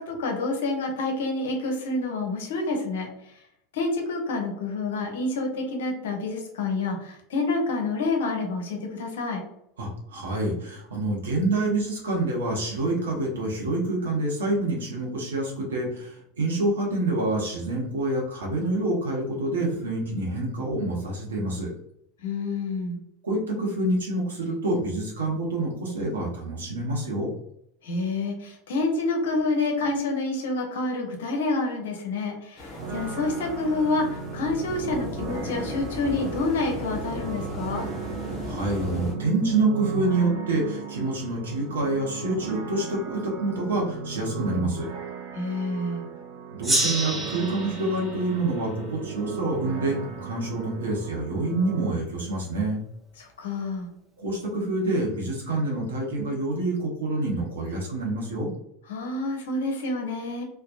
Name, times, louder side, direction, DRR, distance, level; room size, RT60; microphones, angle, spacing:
voice 1, 0.0-3.4 3.7-9.4 22.2-23.0 27.8-37.9 45.3-46.1 53.2-53.9 58.9-60.4, left 3 dB, 65° left, 2 dB, 0.6 m, -28 dB
voice 2, 9.8-21.7 23.2-27.3 38.5-44.9 46.5-52.8 54.2-58.5, right 2 dB, 70° right, -3 dB, 0.8 m, -27 dB
sound 1, 32.6-39.1, left 1 dB, 30° left, 0.8 m, -36 dB
sound 2, 32.7-51.9, right 7 dB, 50° right, 0.5 m, -36 dB
Gong, 46.6-49.8, right 1 dB, 10° right, 0.7 m, -30 dB
2.7 x 2.1 x 2.5 m, 0.76 s
figure-of-eight pair, 80°, 0 cm